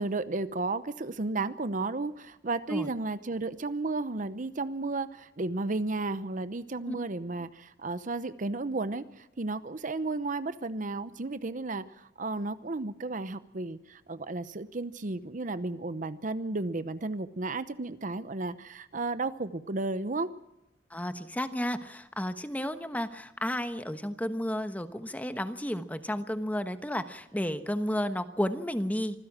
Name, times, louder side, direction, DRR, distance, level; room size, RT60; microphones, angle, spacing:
voice 1, 0.0-20.3, right 3 dB, 45° right, 13 dB, 0.8 m, -33 dB
voice 2, 20.9-29.2, equal, 10° left, 9 dB, 1.1 m, -32 dB
25.5 x 15.5 x 7.5 m, 0.89 s
head